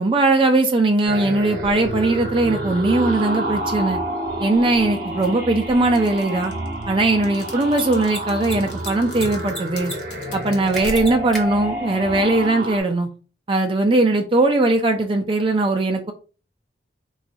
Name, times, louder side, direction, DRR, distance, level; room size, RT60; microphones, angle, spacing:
voice 1, 0.0-4.0 4.4-6.5 6.9-9.9 10.3-13.1 13.5-16.1, right 2 dB, 25° right, 0.4 m, -19 dB
sound 1, 1.0-12.8, right 1 dB, 50° right, 0.8 m, -29 dB
Mechanisms, 5.2-5.3 7.6-7.8 8.1-8.2 8.4-9.2 9.5-9.9 10.2-10.3 10.7-11.4, right 1 dB, ahead, 0.7 m, -31 dB
sound 2, 5.9-11.0, left 5 dB, 65° left, 0.7 m, -41 dB
2.5 x 2.3 x 4.0 m
head